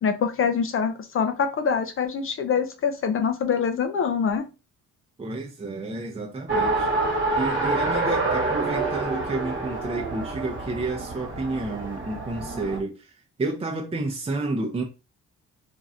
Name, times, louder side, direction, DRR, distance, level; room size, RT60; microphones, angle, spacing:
voice 1, 0.0-4.5, left 6 dB, 45° left, 0.5 m, -25 dB
voice 2, 5.2-6.9 7.4-13.1 13.4-14.8, right 2 dB, 20° right, 0.6 m, -30 dB
Race car auto racing, 6.5-12.8, right 2 dB, 40° right, 1.2 m, -27 dB
3.0 x 2.6 x 2.5 m
cardioid pair, 90°, 30 cm